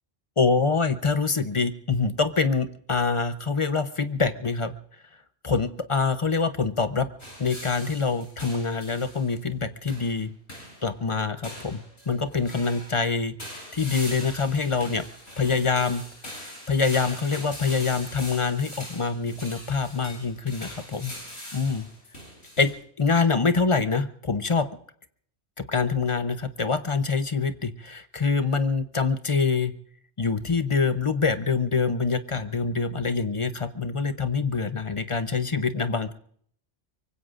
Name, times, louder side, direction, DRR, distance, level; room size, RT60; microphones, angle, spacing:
voice 1, 0.4-4.7 5.4-7.1 7.4-10.3 10.8-11.8 12.1-15.0 15.4-16.0 16.7-21.1 21.5-21.9 22.6-24.7 25.6-29.7 30.2-36.1, left 4 dB, 35° left, 10 dB, 0.7 m, -25 dB
sound 1, 7.2-9.3 9.9-10.2 10.5-10.9 11.4-13.0 13.4-22.7, equal, 75° left, 8.4 m, -41 dB
24.5 x 24.0 x 2.5 m, 0.62 s
omnidirectional pair, 1.1 m